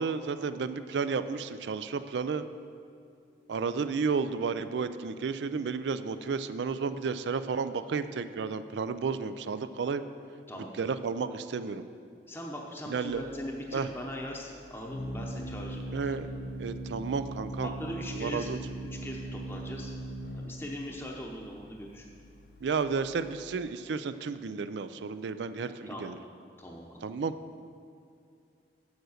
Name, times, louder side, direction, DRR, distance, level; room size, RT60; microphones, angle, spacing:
voice 1, 0.0-2.5 3.5-10.0 10.5-11.8 12.9-13.2 13.7-13.9 15.9-16.3 16.6-17.7 18.2-18.6 22.6-26.2 27.0-27.3, right 5 dB, 85° right, 12 dB, 0.4 m, -32 dB
voice 2, 12.3-16.3 17.6-18.5 19.0-19.9 20.3-22.1 25.9-26.1 26.6-27.0, equal, 15° left, -2 dB, 0.7 m, -40 dB
Organ, 13.1-23.6, right 1 dB, 65° left, 0.8 m, -40 dB
7.7 x 7.1 x 6.4 m, 2.5 s
head